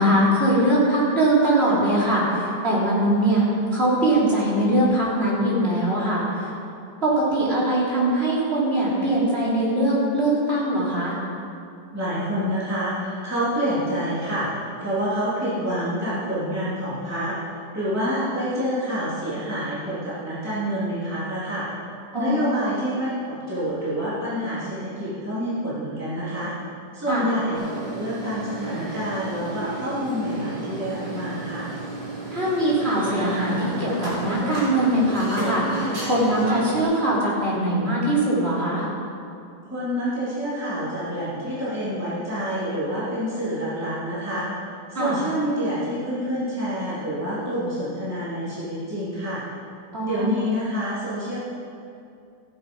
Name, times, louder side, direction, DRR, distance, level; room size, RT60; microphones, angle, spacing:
voice 1, 0.0-3.5 3.7-6.5 7.0-11.2 22.1-22.5 27.1-27.2 32.3-38.8 44.9-45.2 49.9-50.3, right 1 dB, 35° right, -6 dB, 3.4 m, -22 dB
voice 2, 11.9-21.7 22.2-26.5 26.9-31.7 39.6-44.5 44.9-49.4 50.0-51.4, equal, 10° right, -11 dB, 3.2 m, -27 dB
sound 1, 27.5-36.8, right 2 dB, 60° right, 3.6 m, -32 dB
15.0 x 8.5 x 5.4 m, 2.5 s
omnidirectional pair, 1.9 m